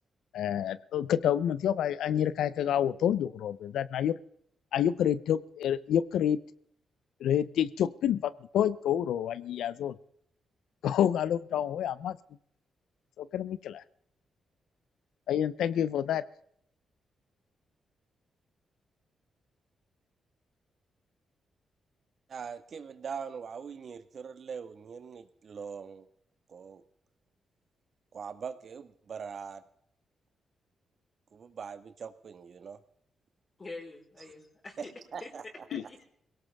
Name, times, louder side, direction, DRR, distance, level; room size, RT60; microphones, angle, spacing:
voice 1, 0.3-4.2 4.7-6.4 7.2-10.0 10.8-12.2 13.2-13.8 15.3-16.2 35.7-35.8, left 10 dB, 85° left, 17 dB, 0.6 m, -28 dB
voice 2, 22.3-26.1 26.5-26.8 28.1-29.6 31.3-32.8 34.8-34.9 35.1-35.6, right 6 dB, 60° right, 11 dB, 1.6 m, -42 dB
voice 3, 33.6-34.9 35.2-36.0, left 2 dB, 35° left, -1 dB, 4.8 m, -45 dB
21.5 x 17.5 x 3.5 m, 0.70 s
cardioid pair, 70°, 0 cm